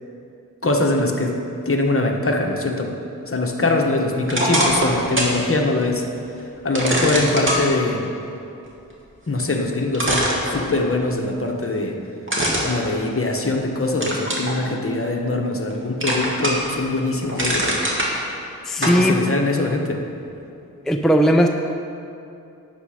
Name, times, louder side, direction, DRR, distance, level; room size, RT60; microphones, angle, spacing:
voice 1, 0.6-1.4 1.6-2.9 3.3-6.0 6.6-8.1 9.3-12.0 12.6-17.7 18.8-20.0, left 2 dB, 40° left, 1 dB, 1.4 m, -22 dB
sound 1, 4.3-5.4 5.8-5.9 6.7-7.6 9.4-9.5 9.9-11.0 12.3-13.6 14.0-14.5 15.0-15.7 16.0-16.7 17.1-18.1 18.8-19.0, equal, 35° right, 2.4 m, -22 dB
voice 2, 18.7-19.2 20.9-21.5, equal, ahead, 3 dB, 0.6 m, -17 dB
11.5 x 8.6 x 5.1 m, 2.6 s
cardioid pair, 55°, 34 cm